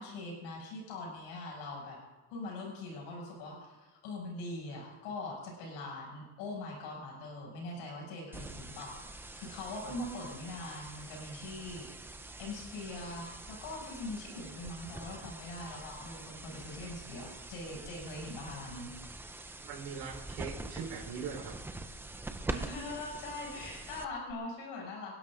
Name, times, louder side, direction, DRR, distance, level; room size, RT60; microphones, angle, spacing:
voice 1, 0.0-2.0 2.3-11.8 12.4-18.9 22.5-25.1, left 2 dB, 85° left, -2 dB, 7.2 m, -42 dB
sound 1, 8.3-24.3, right 2 dB, 5° right, 0.6 m, -45 dB
voice 2, 19.6-21.6, right 6 dB, 75° right, -2 dB, 4.4 m, -41 dB
29.0 x 11.5 x 3.9 m, 1.1 s
cardioid pair, 165°, 36 cm